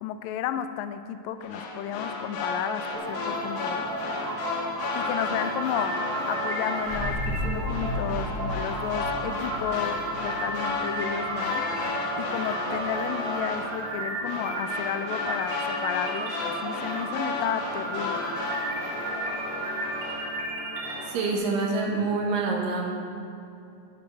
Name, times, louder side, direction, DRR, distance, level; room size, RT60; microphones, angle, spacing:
voice 1, 0.0-3.9 4.9-6.0 6.3-11.7 12.2-18.3, left 10 dB, 85° left, 11 dB, 2.2 m, -32 dB
sound 1, 1.4-20.5 20.8-21.4, left 3 dB, 70° left, 2.2 m, -33 dB
sound 2, 3.0-21.0, right 2 dB, 60° right, 2.7 m, -33 dB
sound 3, 6.8-11.4 11.7-11.8, equal, 25° right, 1.1 m, -34 dB
voice 2, 21.1-22.9, right 3 dB, 80° right, -1 dB, 3.0 m, -26 dB
12.0 x 5.2 x 6.1 m, 2.6 s
omnidirectional pair, 3.9 m